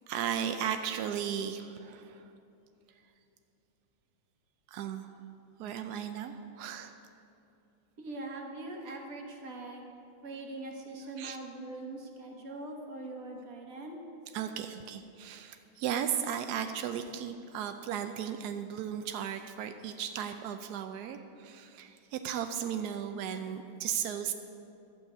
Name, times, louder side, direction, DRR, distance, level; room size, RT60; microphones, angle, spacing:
voice 1, 0.1-2.3 4.7-5.1 5.6-6.9 11.2-11.4 14.3-24.3, right 9 dB, 80° right, 7 dB, 0.9 m, -35 dB
voice 2, 8.0-9.8 10.2-14.0, right 2 dB, 45° right, 1 dB, 1.6 m, -42 dB
11.5 x 6.4 x 8.1 m, 2.7 s
omnidirectional pair, 2.3 m